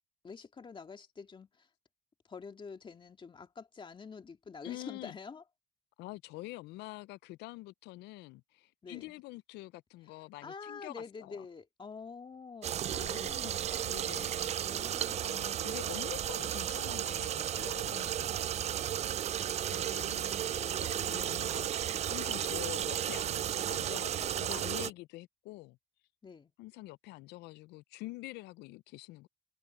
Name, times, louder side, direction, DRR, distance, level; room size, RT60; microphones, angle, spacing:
voice 1, 0.2-1.7 2.3-5.4 8.8-9.1 10.4-14.1 14.3-15.7 19.6-21.5 24.4-24.9 26.2-26.5, left 5 dB, 30° left, 2.3 m, -48 dB
voice 2, 4.6-5.2 6.0-11.5 13.0-14.4 15.2-20.4 20.8-25.8 26.6-29.3, left 20 dB, 85° left, 0.5 m, -46 dB
sound 1, 12.6-24.9, right 10 dB, 40° right, 0.4 m, -34 dB
open air
cardioid pair, 110°, 17 cm